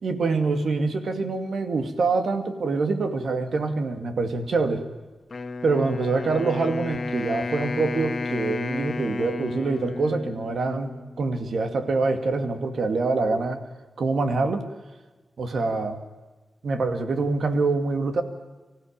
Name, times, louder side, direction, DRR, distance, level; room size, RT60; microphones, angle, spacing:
voice 1, 0.0-4.8 5.6-10.9 11.2-13.6 14.0-14.6 15.4-16.0 16.6-18.2, right 3 dB, 70° right, 7 dB, 2.3 m, -25 dB
Wind instrument woodwind instrument, 5.3-11.3, left 3 dB, 45° left, 1.6 m, -32 dB
25.0 x 15.5 x 8.9 m, 1.2 s
wide cardioid pair, 155°, 0 cm